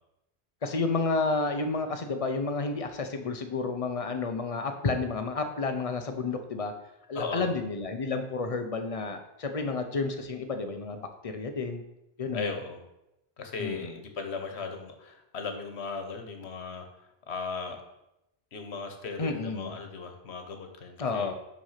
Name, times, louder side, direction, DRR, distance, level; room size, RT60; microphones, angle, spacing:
voice 1, 0.6-6.7 7.1-11.8 12.2-12.5 13.6-13.9 19.2-19.7 21.0-21.3, left 3 dB, 35° left, 6 dB, 0.7 m, -31 dB
voice 2, 7.1-7.5 12.3-12.8 13.4-16.9 17.3-17.8 18.5-21.3, left 4 dB, 90° left, 6 dB, 1.3 m, -37 dB
5.9 x 5.3 x 5.7 m, 0.89 s
omnidirectional pair, 1.1 m